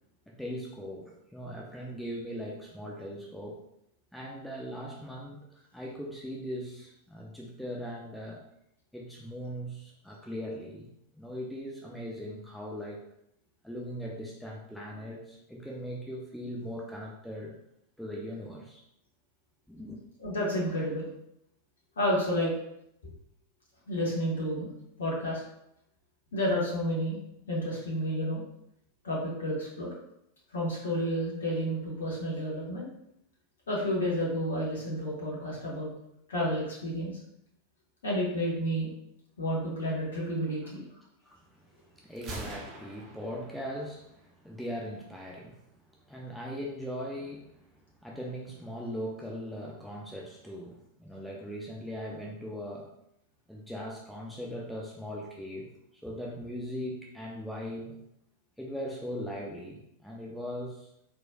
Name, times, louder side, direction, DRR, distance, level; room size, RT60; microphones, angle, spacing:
voice 1, 0.3-3.6 4.1-8.4 8.9-10.9 11.1-13.0 13.6-17.6 18.0-18.8 19.7-20.0 41.2-45.6 45.9-47.6 48.0-52.9 53.5-58.0 58.6-60.9, equal, ahead, -2 dB, 0.6 m, -39 dB
voice 2, 20.2-21.1 22.0-22.5 23.9-24.7 25.0-25.4 26.3-27.2 27.5-28.4 29.0-29.9 30.5-32.9 33.7-35.9 36.3-37.2 38.0-38.9 39.4-40.8, equal, 65° left, -5 dB, 1.5 m, -30 dB
Gunshot gunfire, 42.2-44.1, right 2 dB, 35° right, 0.9 m, -43 dB
4.3 x 4.3 x 2.4 m, 0.78 s
figure-of-eight pair, 90°, 0 cm